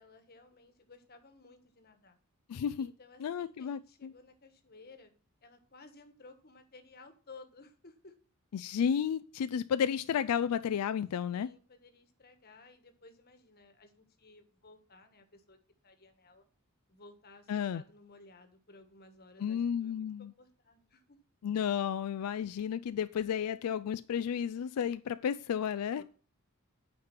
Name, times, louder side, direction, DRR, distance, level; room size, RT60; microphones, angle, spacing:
voice 1, 0.0-2.2 2.8-5.1 5.4-8.1 11.3-15.6 15.8-16.4 16.9-21.2 26.0-26.1, left 3 dB, 45° left, 1.3 m, -57 dB
voice 2, 2.5-2.9 3.2-4.1 8.5-11.5 17.5-17.8 19.4-20.3 21.4-26.0, left 8 dB, 85° left, 0.3 m, -32 dB
8.7 x 5.2 x 5.9 m
head